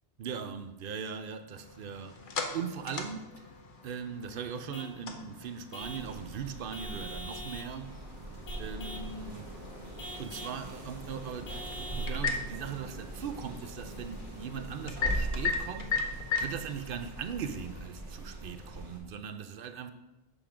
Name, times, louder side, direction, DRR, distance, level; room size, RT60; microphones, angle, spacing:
voice 1, 0.2-3.5 3.8-8.0 8.6-9.5 10.2-19.9, right 7 dB, 60° right, 0.7 m, -40 dB
sound 1, 1.6-17.9, left 5 dB, 50° left, 0.9 m, -39 dB
Vehicle horn car horn honking / Truck, 4.7-5.0 5.7-6.1 6.7-7.7 8.5-9.1 10.0-10.6 11.5-12.2, equal, 80° left, 1.2 m, -43 dB
sound 2, 5.8-19.0, right 1 dB, 40° right, 1.5 m, -41 dB
7.0 x 3.6 x 5.7 m
omnidirectional pair, 1.1 m